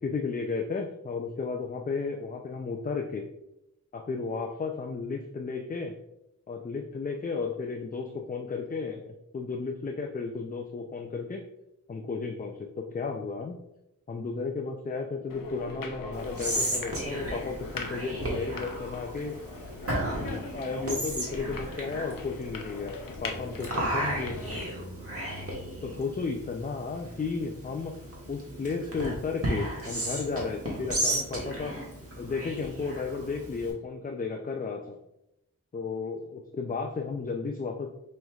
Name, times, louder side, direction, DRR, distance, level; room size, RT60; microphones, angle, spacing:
voice 1, 0.0-3.3 3.9-5.9 6.5-11.5 11.9-13.6 14.1-19.3 20.2-24.4 25.8-27.9 28.3-31.7 32.2-35.0 35.7-37.9, left 4 dB, 25° left, 3 dB, 0.4 m, -33 dB
sound 1, 15.3-24.6, left 3 dB, 80° left, 0.6 m, -40 dB
Whispering, 16.1-33.7, right 1 dB, 45° right, 1.3 m, -35 dB
5.4 x 3.2 x 2.3 m, 0.85 s
wide cardioid pair, 55°, 33 cm